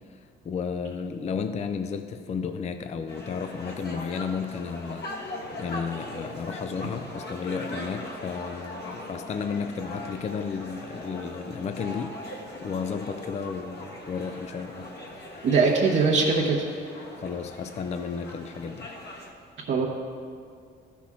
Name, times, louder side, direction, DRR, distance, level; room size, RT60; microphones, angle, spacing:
voice 1, 0.4-14.9 17.2-18.9, left 6 dB, 35° left, 8 dB, 0.4 m, -33 dB
sound 1, 3.1-19.3, left 1 dB, 55° left, 1.4 m, -40 dB
voice 2, 15.4-16.7 19.7-19.9, right 4 dB, 70° right, -4 dB, 1.2 m, -21 dB
13.0 x 6.0 x 3.6 m, 2.2 s
cardioid pair, 90°, 20 cm